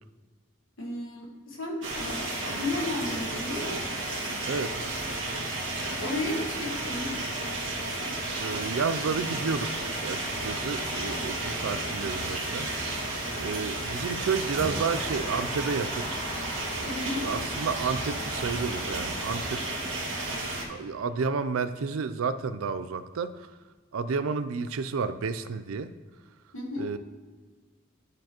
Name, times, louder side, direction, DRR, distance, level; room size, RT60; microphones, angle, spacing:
voice 1, 0.8-3.8 6.0-7.2 16.9-17.3 26.5-26.9, left 2 dB, 75° left, -1 dB, 1.7 m, -33 dB
sound 1, 1.8-20.7, right 2 dB, 65° right, 1.8 m, -33 dB
voice 2, 4.4-4.7 8.4-12.7 13.4-16.1 17.2-19.6 20.7-23.5 23.9-25.9 26.8-27.0, right 5 dB, 85° right, 13 dB, 0.4 m, -31 dB
sound 2, 10.1-19.5, equal, 20° left, 2.2 m, -41 dB
11.5 x 4.8 x 3.0 m, 1.4 s
head